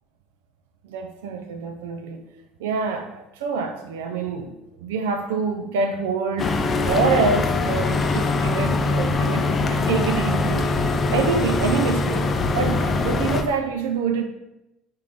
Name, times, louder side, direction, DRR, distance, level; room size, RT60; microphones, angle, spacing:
voice 1, 0.8-2.2 2.6-10.7 11.1-14.2, right 5 dB, 70° right, 6 dB, 0.3 m, -26 dB
sound 1, 6.4-13.4, left 3 dB, 35° left, 0.4 m, -22 dB
4.7 x 2.9 x 3.5 m, 0.92 s
figure-of-eight pair, 60°, 0 cm